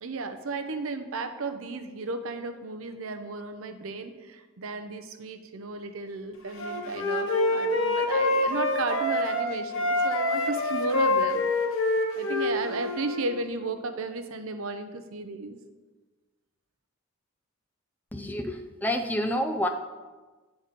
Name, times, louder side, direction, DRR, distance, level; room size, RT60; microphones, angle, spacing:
voice 1, 0.0-11.5 12.2-15.6, right 3 dB, 70° right, 7 dB, 0.6 m, -34 dB
Wind instrument woodwind instrument, 6.6-9.5 9.7-13.2, left 2 dB, 65° left, 1.0 m, -26 dB
voice 2, 18.1-18.6 18.8-19.7, left 1 dB, 10° left, 5 dB, 0.4 m, -28 dB
8.8 x 4.1 x 5.2 m, 1.3 s
head